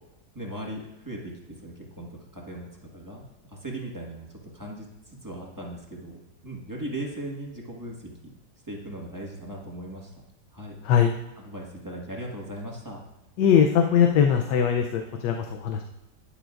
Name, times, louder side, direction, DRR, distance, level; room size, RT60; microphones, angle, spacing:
voice 1, 0.3-1.3 1.6-4.3 4.5-8.3 8.7-10.1 10.5-10.7 11.4-13.0, right 1 dB, 10° right, -2 dB, 1.5 m, -38 dB
voice 2, 13.4-15.8, left 8 dB, 80° left, 5 dB, 1.3 m, -21 dB
12.0 x 10.0 x 2.5 m, 0.98 s
omnidirectional pair, 1.9 m